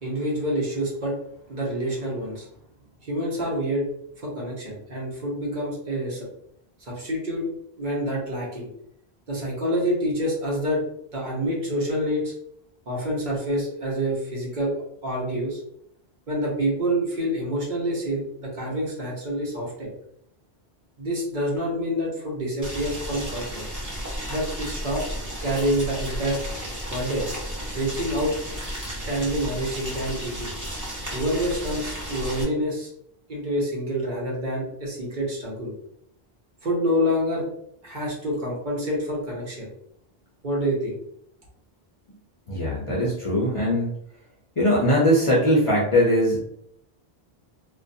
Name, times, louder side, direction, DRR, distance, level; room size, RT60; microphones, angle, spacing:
voice 1, 0.0-1.2 1.5-2.5 3.0-3.9 4.2-6.3 6.9-7.4 7.8-8.7 9.3-10.8 11.1-12.3 12.9-14.7 15.0-15.6 16.3-19.9 21.0-23.6 24.3-25.0 25.4-26.4 26.9-27.3 27.7-28.3 29.0-30.5 31.1-32.9 33.3-35.7 36.6-37.5 37.8-39.7 40.4-41.0, equal, 50° right, -4 dB, 0.9 m, -27 dB
Boiling, 22.6-32.4, equal, 20° right, 0.6 m, -33 dB
voice 2, 42.5-43.9 44.6-46.5, equal, 45° left, -5 dB, 0.5 m, -21 dB
2.3 x 2.2 x 2.5 m, 0.72 s
omnidirectional pair, 1.1 m